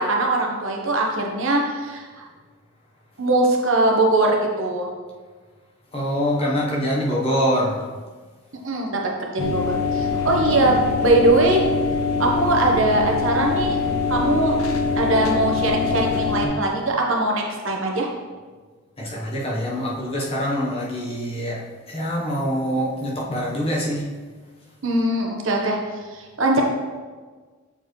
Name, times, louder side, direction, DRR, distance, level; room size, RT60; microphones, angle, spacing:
voice 1, 0.0-2.2 3.2-4.9 8.6-11.6 12.2-13.8 14.1-14.5 15.0-18.1 24.8-26.6, right 2 dB, 65° right, 0 dB, 0.9 m, -21 dB
voice 2, 5.9-7.9 19.0-21.6 21.9-24.1, equal, 25° left, -4 dB, 0.9 m, -24 dB
sound 1, 9.4-16.5, left 4 dB, 90° left, 0.7 m, -23 dB
6.9 x 4.5 x 3.1 m, 1.4 s
head